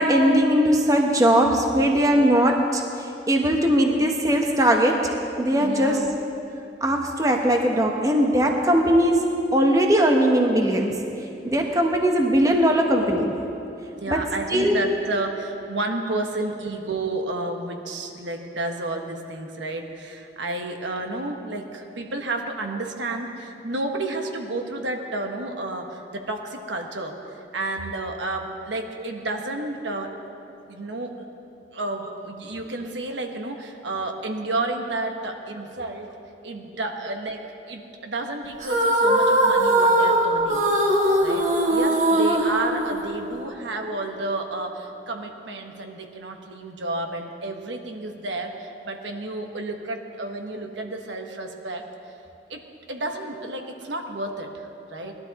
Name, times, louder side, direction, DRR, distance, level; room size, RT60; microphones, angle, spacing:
voice 1, 0.0-2.8 3.3-6.0 6.8-11.0 11.4-13.4 14.1-14.2 14.5-14.8 29.0-29.1, equal, 20° right, 2 dB, 1.0 m, -20 dB
voice 2, 5.6-6.1 14.0-30.1 30.7-31.2 31.7-36.2 36.4-40.6 41.2-51.8 52.5-52.6 52.9-55.1, right 2 dB, 85° right, 3 dB, 1.3 m, -31 dB
sound 1, 38.6-43.4, right 1 dB, 40° right, 1.6 m, -20 dB
20.0 x 12.0 x 4.1 m, 2.7 s
head